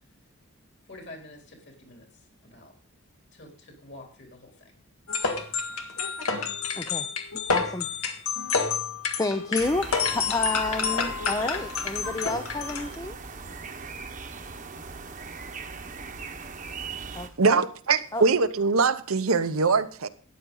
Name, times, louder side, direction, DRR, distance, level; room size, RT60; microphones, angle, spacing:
voice 1, 0.9-2.7 3.3-4.8, left 2 dB, 50° left, 2 dB, 3.6 m, -48 dB
sound 1, 5.1-12.9, left 5 dB, 80° left, 1.8 m, -29 dB
voice 2, 6.7-7.1 7.5-7.9 9.2-13.2 17.1-17.6 18.1-18.2, left 2 dB, 15° left, 8 dB, 0.5 m, -30 dB
sound 2, 9.6-17.3, right 4 dB, 35° right, 1.0 m, -39 dB
voice 3, 17.4-20.1, right 4 dB, 75° right, 11 dB, 0.9 m, -22 dB
13.5 x 9.6 x 3.9 m, 0.42 s
head